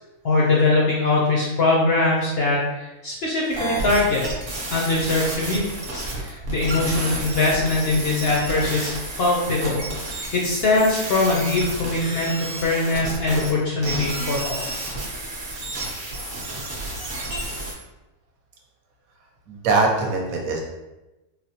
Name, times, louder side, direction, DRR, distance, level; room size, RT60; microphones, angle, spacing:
voice 1, 0.2-4.3 4.7-14.6, left 2 dB, 65° left, -4 dB, 0.6 m, -22 dB
sound 1, 3.5-13.5 13.8-17.7, right 2 dB, 50° right, 0.7 m, -31 dB
voice 2, 19.5-20.6, right 3 dB, 70° right, 0 dB, 1.0 m, -22 dB
4.0 x 2.1 x 2.7 m, 1.0 s
omnidirectional pair, 1.6 m